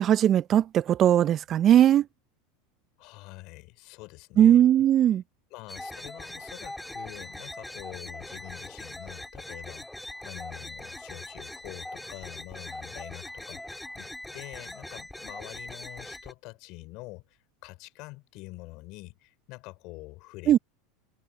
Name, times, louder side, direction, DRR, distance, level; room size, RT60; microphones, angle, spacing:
voice 1, 0.0-2.0 4.4-5.2 20.5-20.6, right 10 dB, 40° right, 0.5 m, -19 dB
voice 2, 3.0-5.2 5.5-20.6, left 23 dB, 60° left, 4.1 m, -46 dB
sound 1, 5.7-16.3, left 1 dB, 5° left, 3.1 m, -41 dB
hypercardioid pair, 95°, 0 cm